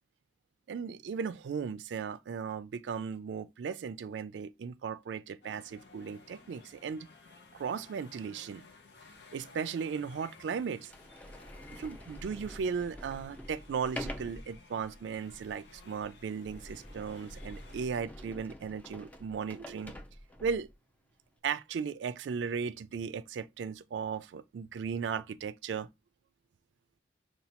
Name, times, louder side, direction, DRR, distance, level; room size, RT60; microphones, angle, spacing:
voice 1, 0.7-7.1 7.5-8.6 9.3-10.9 11.7-19.9 20.4-20.7 21.4-25.9, right 6 dB, 85° right, 0.3 m, -36 dB
sound 1, 5.4-17.9, left 4 dB, 70° left, 0.8 m, -57 dB
Sliding door, 10.3-10.4 10.8-20.7, equal, 10° left, 0.5 m, -47 dB
6.6 x 2.3 x 2.9 m
head